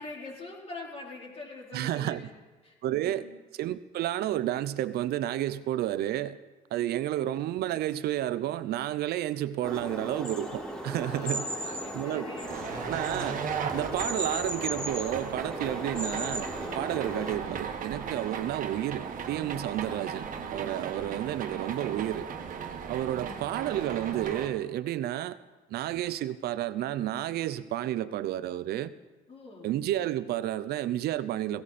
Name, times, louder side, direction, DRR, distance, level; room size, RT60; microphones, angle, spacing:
voice 1, 0.0-2.3 2.6-3.3 6.8-7.2 10.9-13.0 20.9-21.2 23.0-23.6 29.3-29.7, left 2 dB, 35° left, 4.4 m, -45 dB
voice 2, 1.7-2.2 2.8-3.3 3.6-6.4 6.7-11.5 11.9-12.3 12.8-13.4 13.7-22.3 22.9-25.4 25.7-28.9 29.6-31.6, right 13 dB, 70° right, 0.7 m, -31 dB
sound 1, 9.6-17.4, right 1 dB, 5° left, 4.0 m, -36 dB
sound 2, 12.4-24.5, right 6 dB, 50° right, 1.5 m, -37 dB
17.0 x 16.0 x 4.3 m
cardioid pair, 110°, 17 cm